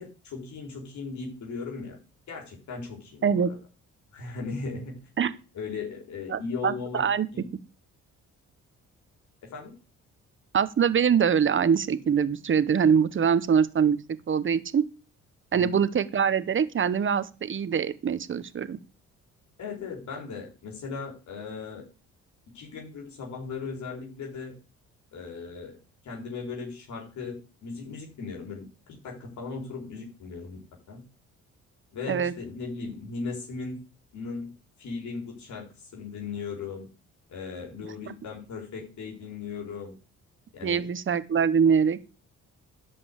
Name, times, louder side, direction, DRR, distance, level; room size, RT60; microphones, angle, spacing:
voice 1, 0.0-2.0 2.3-3.6 4.1-5.0 5.5-7.5 9.4-9.8 15.5-15.8 19.6-21.8 22.5-24.6 25.1-25.8 26.0-30.6 30.9-31.0 31.9-33.8 34.1-36.9 37.3-39.9 40.5-40.9, left 4 dB, 70° left, 0 dB, 3.9 m, -37 dB
voice 2, 6.3-7.3 10.5-14.0 14.3-14.8 15.5-18.8 32.1-32.3 38.0-38.1 40.6-42.2, right 7 dB, 40° right, 15 dB, 1.1 m, -24 dB
11.0 x 5.4 x 8.2 m, 0.34 s
cardioid pair, 90°, 30 cm